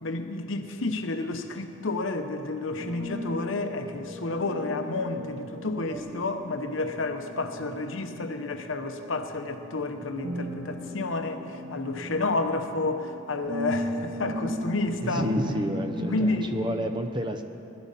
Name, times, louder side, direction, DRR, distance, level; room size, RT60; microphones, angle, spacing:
voice 1, 0.0-15.2 16.1-16.5, left 2 dB, 75° left, 6 dB, 0.9 m, -30 dB
sound 1, 2.8-16.9, equal, 65° right, 1.3 m, -37 dB
voice 2, 15.0-17.4, equal, 20° right, 6 dB, 0.6 m, -30 dB
20.0 x 12.0 x 4.2 m, 2.7 s
head